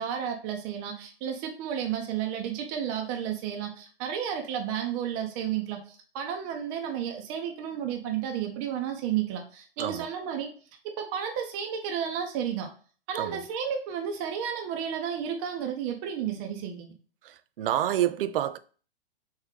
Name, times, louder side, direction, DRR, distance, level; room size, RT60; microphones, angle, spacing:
voice 1, 0.0-10.5 11.0-12.7 13.1-17.0, right 8 dB, 35° right, 0.7 m, -32 dB
voice 2, 17.2-18.6, right 11 dB, 65° right, 0.4 m, -28 dB
3.6 x 3.1 x 3.3 m
hypercardioid pair, 115°, 31 cm